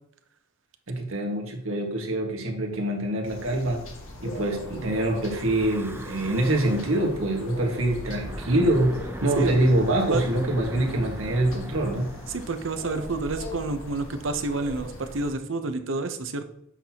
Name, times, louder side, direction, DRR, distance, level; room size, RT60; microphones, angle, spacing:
voice 1, 0.9-3.9 4.2-12.1, right 1 dB, 85° right, 1 dB, 1.6 m, -25 dB
sound 1, 3.2-15.3, left 2 dB, 90° left, 1.4 m, -40 dB
Breathing / Wind, 5.2-7.2 8.1-13.4, right 1 dB, 10° right, 0.5 m, -39 dB
voice 2, 12.3-16.4, right 3 dB, 70° right, 8 dB, 0.8 m, -29 dB
7.9 x 6.1 x 2.9 m, 0.74 s
head